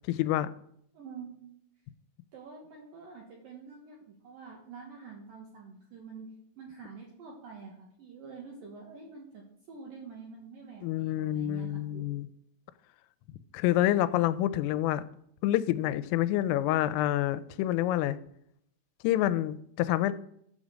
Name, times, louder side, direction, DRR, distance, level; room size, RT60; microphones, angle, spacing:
voice 1, 0.1-0.5 10.8-12.3 13.5-15.0 15.4-18.2 19.0-20.1, left 13 dB, 85° left, 14 dB, 3.1 m, -27 dB
voice 2, 0.9-1.5 2.3-6.3 6.6-9.4 9.7-12.1, right 5 dB, 65° right, -1 dB, 2.3 m, -47 dB
12.0 x 5.2 x 7.4 m, 0.72 s
omnidirectional pair, 5.8 m